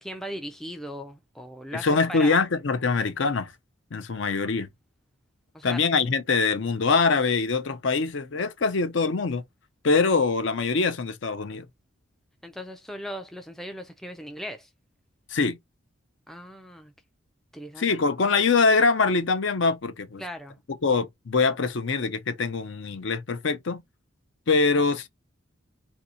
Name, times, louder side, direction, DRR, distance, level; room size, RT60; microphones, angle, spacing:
voice 1, 0.0-2.4 5.5-5.8 12.4-14.7 16.3-16.9 17.5-18.0 20.2-20.6 24.7-24.8, equal, ahead, 0.3 m, -38 dB
voice 2, 1.7-3.5 3.9-4.7 5.6-9.4 9.8-11.7 15.3-15.6 17.8-20.2 20.8-23.8 24.5-25.1, left 4 dB, 65° left, 0.6 m, -23 dB
2.7 x 2.7 x 4.0 m
head